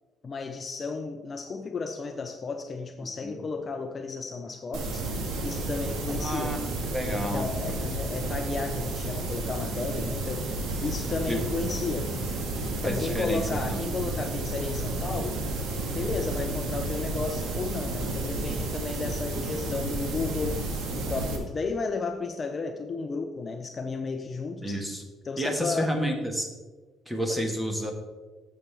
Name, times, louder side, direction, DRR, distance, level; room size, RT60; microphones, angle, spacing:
voice 1, 0.2-5.1 5.4-6.6 7.1-10.5 10.8-12.1 12.7-15.4 15.9-20.6 20.9-24.8 25.2-25.9, left 4 dB, 30° left, 6 dB, 0.5 m, -33 dB
sound 1, 4.7-21.4, right 2 dB, 70° right, 1.6 m, -31 dB
voice 2, 6.2-6.6 6.9-7.8 11.3-11.4 12.8-13.4 13.7-13.9 24.6-25.0 25.4-26.5 27.1-27.9, equal, 5° right, 4 dB, 1.3 m, -30 dB
10.5 x 7.4 x 3.4 m, 1.3 s
cardioid pair, 135°, 0 cm